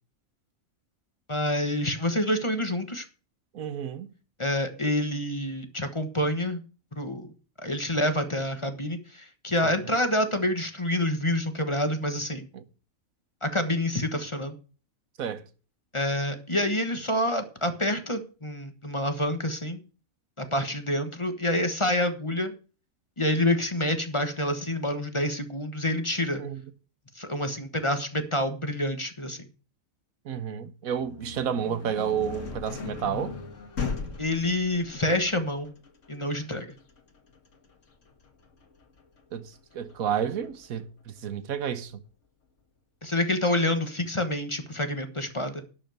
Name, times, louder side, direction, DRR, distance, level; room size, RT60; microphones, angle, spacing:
voice 1, 1.3-3.1 4.4-6.6 7.0-7.3 7.6-12.5 13.4-14.5 15.9-19.8 20.4-22.5 23.2-26.4 27.1-29.5 34.2-35.7 36.1-36.7 43.0-45.6, left 1 dB, 25° left, 1.3 m, -27 dB
voice 2, 3.5-4.1 9.6-9.7 12.5-12.6 15.2-15.4 26.4-26.6 30.2-33.4 39.3-41.9, right 8 dB, 90° right, 1.4 m, -31 dB
sound 1, 30.9-40.7, left 5 dB, 65° left, 2.0 m, -39 dB
12.0 x 5.6 x 7.8 m
omnidirectional pair, 1.4 m